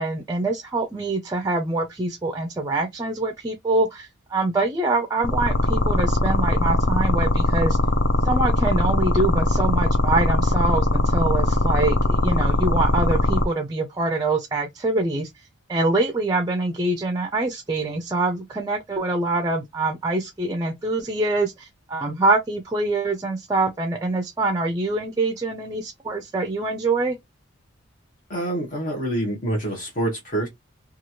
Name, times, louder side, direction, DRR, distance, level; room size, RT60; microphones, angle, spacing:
voice 1, 0.0-7.8 8.2-15.3 15.7-27.2, right 2 dB, 20° right, 0.4 m, -24 dB
sound 1, 5.2-13.4, left 1 dB, 60° left, 0.5 m, -20 dB
voice 2, 28.3-30.5, right 1 dB, 40° left, 0.9 m, -26 dB
2.9 x 2.4 x 2.8 m
head